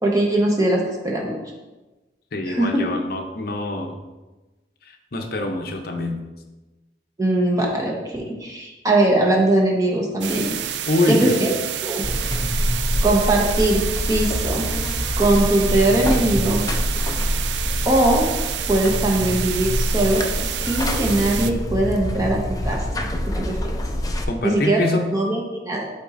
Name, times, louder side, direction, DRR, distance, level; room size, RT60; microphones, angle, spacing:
voice 1, 0.0-1.4 2.5-2.9 7.2-10.5 11.1-11.5 11.8-12.1 13.0-14.7 15.2-16.6 17.8-18.3 18.7-23.1 23.4-23.7 24.4-24.8 25.1-25.8, right 1 dB, 20° right, -1 dB, 1.0 m, -21 dB
voice 2, 2.3-4.0 4.8-6.2 10.9-11.4 24.3-25.1, left 2 dB, 55° left, 4 dB, 0.7 m, -24 dB
sound 1, 10.2-21.5, right 10 dB, 70° right, 0.4 m, -29 dB
Buzz, 12.0-24.2, left 1 dB, 20° left, 0.5 m, -25 dB
10.0 x 4.2 x 2.6 m, 1.1 s
head